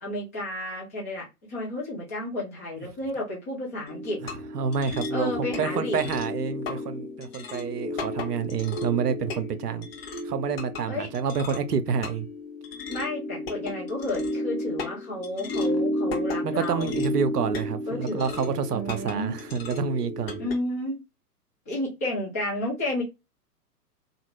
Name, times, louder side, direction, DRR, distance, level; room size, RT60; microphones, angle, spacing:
voice 1, 0.0-4.2 5.1-6.0 10.9-11.1 12.9-17.0 17.9-19.4 20.4-21.0 21.7-23.0, left 1 dB, 10° left, 0.4 m, -32 dB
sound 1, 3.9-20.5, left 1 dB, 40° left, 0.7 m, -33 dB
voice 2, 4.2-5.3 5.6-9.9 10.2-12.3 16.4-20.4, right 6 dB, 75° right, 0.6 m, -28 dB
2.8 x 2.4 x 3.0 m
figure-of-eight pair, 115°, 48 cm